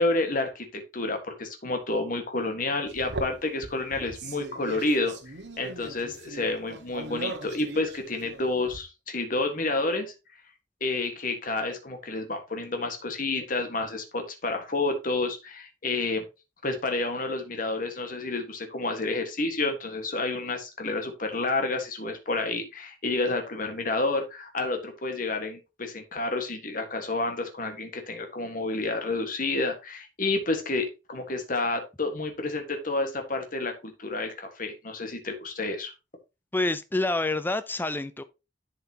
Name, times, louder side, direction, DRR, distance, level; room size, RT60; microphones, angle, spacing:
voice 1, 0.0-5.1 5.6-10.1 10.8-16.2 16.6-35.9, left 2 dB, 45° left, 1.5 m, -29 dB
sound 1, 2.9-8.8, right 2 dB, 70° right, 1.4 m, -39 dB
voice 2, 36.5-38.2, left 2 dB, 10° left, 0.5 m, -27 dB
10.5 x 5.6 x 2.9 m
head